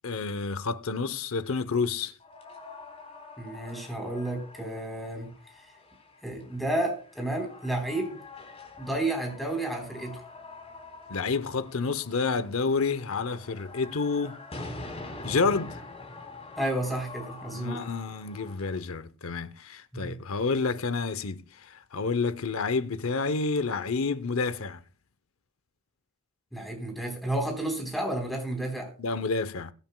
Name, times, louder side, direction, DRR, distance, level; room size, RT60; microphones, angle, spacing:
voice 1, 0.0-2.1 11.1-14.4 15.2-15.8 17.5-24.8 29.0-29.7, left 4 dB, 75° left, 0.7 m, -29 dB
sound 1, 2.2-18.8, left 2 dB, 30° left, 3.9 m, -45 dB
voice 2, 3.4-5.3 6.2-8.2 8.8-10.2 16.6-17.8 19.9-20.2 26.5-28.9, right 1 dB, ahead, 3.8 m, -31 dB
22.0 x 9.0 x 2.2 m
head